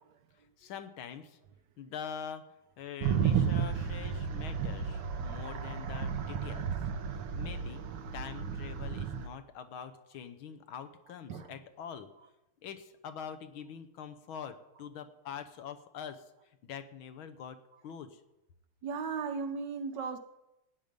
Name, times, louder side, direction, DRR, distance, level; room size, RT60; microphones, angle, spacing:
voice 1, 0.6-1.4 1.8-6.7 7.1-7.8 8.1-12.1 12.6-18.2, left 7 dB, 70° left, 1.7 m, -44 dB
sound 1, 3.0-9.3, right 7 dB, 85° right, 1.8 m, -33 dB
voice 2, 18.8-20.2, right 5 dB, 65° right, 1.2 m, -36 dB
17.0 x 9.4 x 5.2 m
omnidirectional pair, 2.4 m